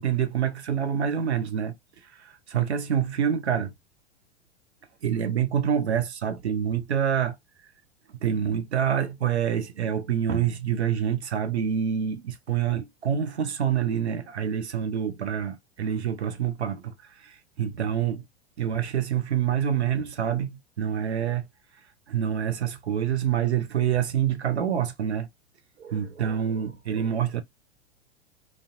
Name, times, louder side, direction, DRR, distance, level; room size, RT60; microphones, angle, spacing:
voice 1, 0.0-1.8 2.0-3.7 5.0-7.4 8.2-18.2 18.6-21.5 22.1-25.3 25.8-27.4, right 8 dB, 75° right, 0.6 m, -27 dB
2.5 x 2.1 x 2.4 m
figure-of-eight pair, 95°, 33 cm